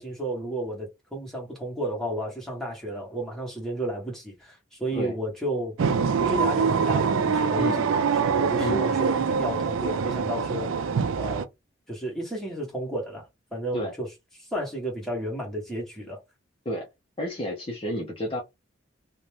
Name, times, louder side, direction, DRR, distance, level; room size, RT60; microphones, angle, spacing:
voice 1, 0.0-5.8 6.2-10.9 11.2-11.5 11.9-14.1 14.4-16.2, right 1 dB, ahead, 1.1 m, -32 dB
sound 1, 5.8-11.4, right 6 dB, 85° right, 0.4 m, -24 dB
voice 2, 17.2-18.4, left 1 dB, 25° left, 0.5 m, -30 dB
2.6 x 2.1 x 3.2 m
head